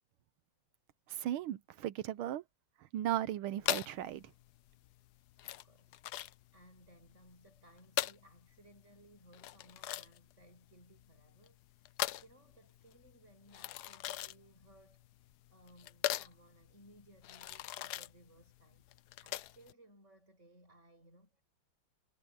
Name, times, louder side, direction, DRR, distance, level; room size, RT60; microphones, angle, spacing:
voice 1, 1.1-2.4 2.9-4.2, right 12 dB, 80° right, 1.6 m, -36 dB
sound 1, 3.6-19.7, left 13 dB, 75° left, 0.9 m, -41 dB
voice 2, 5.3-18.9 19.2-21.4, right 1 dB, 30° right, 7.4 m, -63 dB
omnidirectional pair, 2.4 m